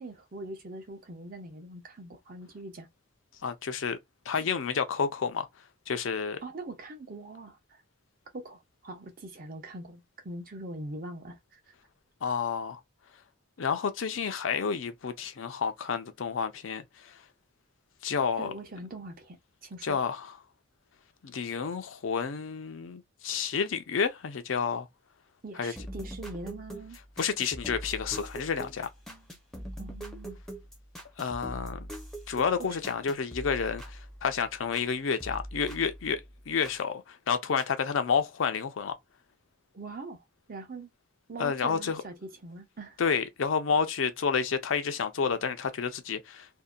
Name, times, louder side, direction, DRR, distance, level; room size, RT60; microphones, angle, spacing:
voice 1, 0.0-2.9 4.3-4.4 6.4-7.8 8.3-11.6 18.4-19.4 19.6-20.0 25.4-27.0 29.8-30.4 32.6-32.7 39.7-40.9 41.3-43.0, right 2 dB, 45° right, 0.7 m, -42 dB
voice 2, 3.4-4.0 4.3-5.5 5.9-6.4 12.2-12.8 13.6-17.2 18.0-18.5 19.8-20.3 21.2-24.9 25.6-25.7 27.2-28.9 31.2-31.9 32.3-38.9 41.4-42.0 43.0-46.5, left 6 dB, 75° left, 0.5 m, -30 dB
sound 1, 25.8-34.9 35.2-36.8 37.6-37.7, equal, ahead, 0.5 m, -43 dB
2.7 x 2.1 x 2.3 m
head